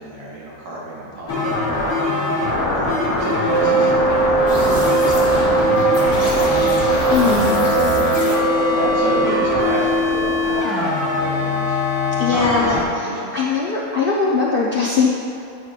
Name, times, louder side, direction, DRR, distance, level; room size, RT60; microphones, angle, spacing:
voice 1, 0.0-7.0 7.6-11.8 12.1-12.4 12.7-13.5, right 2 dB, 90° right, -6 dB, 1.6 m, -31 dB
sound 1, 1.3-12.8, left 3 dB, 35° left, 0.6 m, -21 dB
Wind instrument woodwind instrument, 3.5-10.1, right 5 dB, 60° right, 0.9 m, -20 dB
sound 2, 4.5-10.6, left 1 dB, 65° left, 1.5 m, -30 dB
voice 2, 7.1-7.7 12.2-15.1, left 4 dB, 85° left, -4 dB, 0.5 m, -20 dB
8.8 x 4.7 x 2.4 m, 2.6 s
omnidirectional pair, 1.6 m